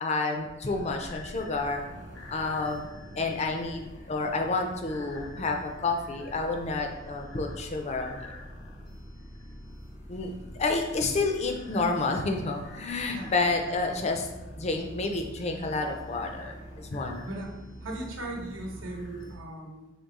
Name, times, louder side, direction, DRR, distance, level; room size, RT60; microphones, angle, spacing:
voice 1, 0.0-1.8 2.3-2.9 3.2-8.3 10.1-10.3 10.6-14.3 14.6-17.3, left 3 dB, 35° left, 3 dB, 0.5 m, -29 dB
sound 1, 0.6-19.4, left 1 dB, 80° left, 1.1 m, -45 dB
voice 2, 17.8-19.9, right 2 dB, 75° right, 0 dB, 0.9 m, -38 dB
3.7 x 3.2 x 4.1 m, 1.0 s
head